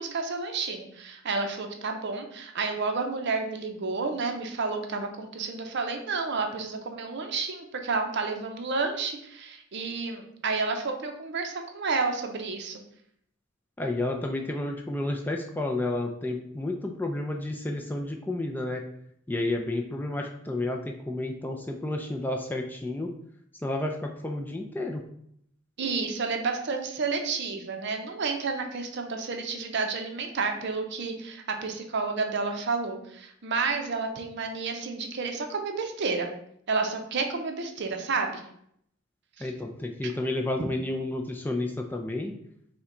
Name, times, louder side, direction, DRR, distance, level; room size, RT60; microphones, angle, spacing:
voice 1, 0.0-12.8 25.8-36.3 36.7-38.4 39.4-39.5 40.0-40.1, right 4 dB, 55° right, 4 dB, 0.6 m, -30 dB
voice 2, 13.8-18.8 19.3-23.1 23.6-25.0 39.4-42.3, left 2 dB, 10° left, 2 dB, 0.3 m, -31 dB
5.6 x 2.2 x 3.7 m, 0.71 s
head